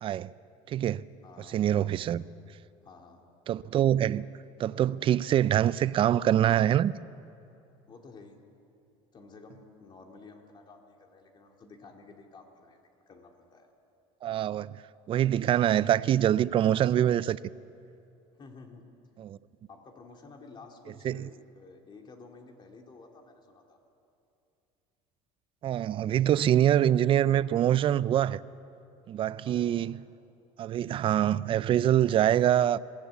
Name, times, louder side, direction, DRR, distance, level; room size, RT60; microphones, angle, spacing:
voice 1, 0.7-1.0 1.5-2.2 3.5-4.3 4.6-6.9 14.2-14.7 15.1-17.4 19.2-19.4 21.0-21.3 25.6-28.4 29.1-30.0 30.6-32.8, right 11 dB, 35° right, 0.5 m, -24 dB
voice 2, 1.2-1.7 2.8-3.2 7.9-8.4 9.1-13.7 18.4-18.8 19.7-23.8 29.4-30.0, left 4 dB, 30° left, 2.6 m, -52 dB
22.5 x 15.5 x 8.3 m
cardioid pair, 130°, 15 cm